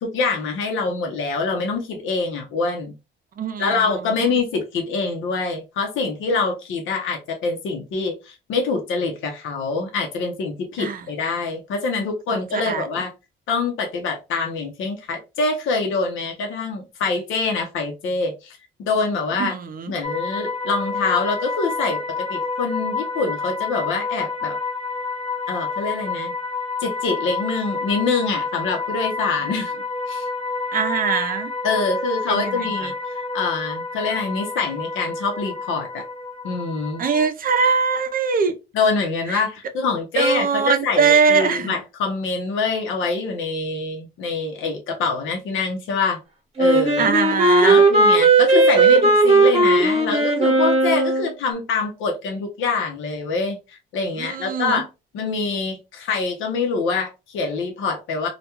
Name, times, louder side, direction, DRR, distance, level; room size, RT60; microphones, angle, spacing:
voice 1, 0.0-2.9 3.6-13.1 13.5-19.5 19.9-24.6 25.5-26.3 26.8-29.7 30.1-30.3 31.6-36.0 36.4-37.0 38.7-46.2 46.6-47.0 47.6-54.9 55.1-58.3, left 4 dB, 80° left, 0.8 m, -25 dB
voice 2, 3.4-3.8 4.2-4.3 10.8-11.0 12.3-12.8 19.4-19.9 29.5-29.6 30.7-31.5 32.3-32.7 37.0-38.5 39.3-39.4 40.2-41.8 47.0-47.8 54.2-54.8, right 5 dB, 45° right, 0.5 m, -22 dB
sound 1, 20.0-37.3, left 4 dB, 30° left, 0.7 m, -29 dB
Wind instrument woodwind instrument, 46.6-51.3, right 3 dB, 30° right, 0.9 m, -16 dB
2.3 x 2.2 x 2.8 m
cardioid pair, 90°, 20 cm